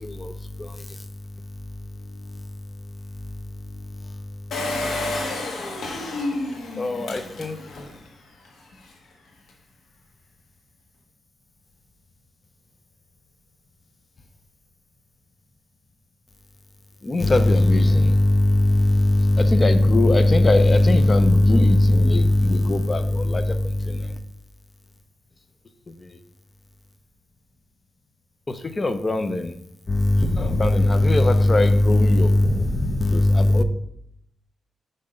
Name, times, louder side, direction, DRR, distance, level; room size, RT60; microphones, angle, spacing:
voice 1, 0.0-0.3 6.8-7.6 17.0-24.1 28.5-29.5 29.9-33.6, left 1 dB, 25° left, 0.6 m, -18 dB
Engine, 4.5-8.0 8.4-8.5 8.7-8.8, left 2 dB, 65° left, 1.4 m, -29 dB
5.8 x 5.4 x 5.1 m
wide cardioid pair, 155°, 0 cm